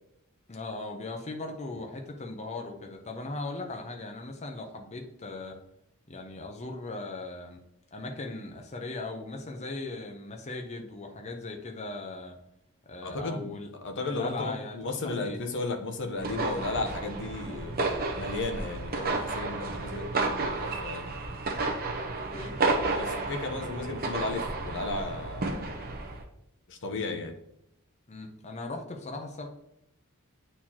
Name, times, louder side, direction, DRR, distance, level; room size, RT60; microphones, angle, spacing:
voice 1, 0.5-5.6 6.1-7.6 7.9-12.4 12.8-13.7 14.0-15.4 22.1-22.6 28.1-29.5, left 2 dB, 30° left, 3 dB, 0.8 m, -38 dB
voice 2, 13.0-13.5 13.8-17.7 18.2-21.1 22.9-25.7 26.7-27.3, left 3 dB, 55° left, 4 dB, 0.9 m, -34 dB
sound 1, 16.2-26.2, right 3 dB, 45° right, 1.0 m, -32 dB
9.0 x 4.4 x 2.9 m, 0.79 s
head